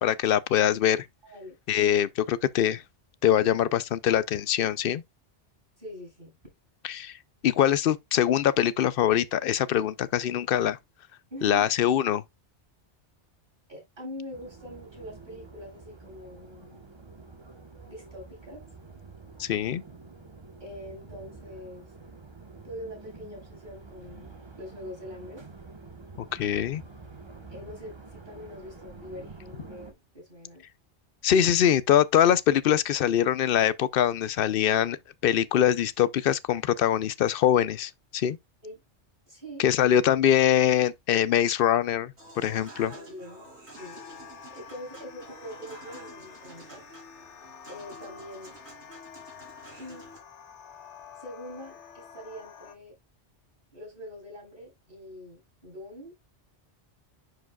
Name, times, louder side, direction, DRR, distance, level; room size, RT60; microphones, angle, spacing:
voice 1, 0.0-1.1 1.7-2.8 3.2-5.0 6.8-7.2 7.4-10.8 11.4-12.2 19.4-19.8 26.2-26.8 31.2-35.0 35.2-38.4 39.6-42.9, left 10 dB, 60° left, 0.6 m, -23 dB
voice 2, 1.2-1.6 5.8-6.4 11.3-11.7 13.7-16.9 17.9-18.7 20.6-21.9 22.6-24.3 24.6-25.4 27.5-30.6 38.6-38.8 39.3-39.7 42.9-44.0 44.5-46.8 47.7-48.5 49.8-50.2 51.2-52.9 53.7-56.1, equal, 50° right, 5.3 m, -43 dB
sound 1, 14.3-29.9, right 3 dB, 25° right, 1.1 m, -48 dB
Human voice / Acoustic guitar / Piano, 42.2-50.2, right 1 dB, 65° right, 3.7 m, -49 dB
sound 2, 43.8-52.8, left 8 dB, 80° left, 1.2 m, -48 dB
10.5 x 4.8 x 2.2 m
omnidirectional pair, 1.2 m